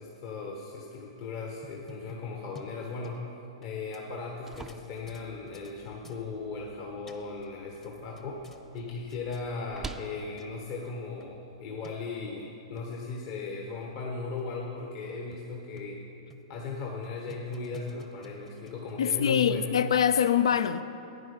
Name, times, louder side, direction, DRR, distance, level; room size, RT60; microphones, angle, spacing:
voice 1, 0.0-3.2 3.6-8.4 8.7-16.0 16.5-19.9, left 4 dB, 50° left, -1 dB, 1.3 m, -37 dB
sound 1, 1.6-3.7 3.9-4.0 4.5-5.7 6.0-6.2 6.8-7.5 7.8-8.8 9.1-9.4 10.1-10.2 10.4-10.5 10.8-10.9 11.2-11.3 11.8-11.9 12.5-12.9 13.4-13.5 13.8-13.9 14.4-14.5 14.8-14.9 15.3-16.0 16.3-16.6 17.0-19.2, left 2 dB, 15° left, 0.8 m, -52 dB
sound 2, 4.0-12.0, right 4 dB, 10° right, 0.4 m, -49 dB
voice 2, 19.0-20.8, left 8 dB, 85° left, 13 dB, 0.4 m, -24 dB
10.5 x 9.5 x 5.2 m, 2.9 s
hypercardioid pair, 125°, 3 cm